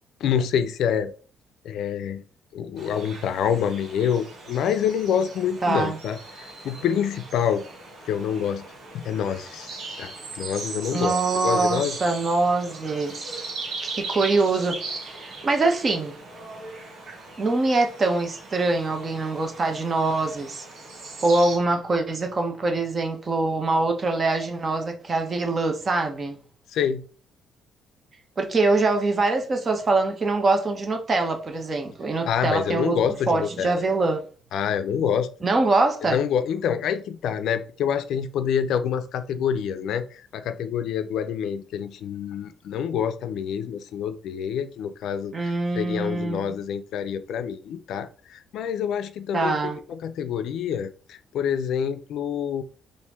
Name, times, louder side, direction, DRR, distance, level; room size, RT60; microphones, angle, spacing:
voice 1, 0.2-1.1 1.6-2.2 2.5-7.6 8.1-8.6 8.9-12.0 26.7-27.0 32.3-33.8 34.5-35.3 36.0-52.6, left 8 dB, 70° left, 0.4 m, -27 dB
sound 1, 2.8-21.6, right 3 dB, 55° right, 1.8 m, -39 dB
voice 2, 5.6-6.0 10.9-13.5 13.8-16.1 17.4-20.6 21.2-26.4 28.4-33.0 33.3-34.2 35.4-36.2 45.3-46.5 49.3-49.8, right 3 dB, 30° right, 0.8 m, -24 dB
4.4 x 2.6 x 3.5 m
cardioid pair, 130°, 0 cm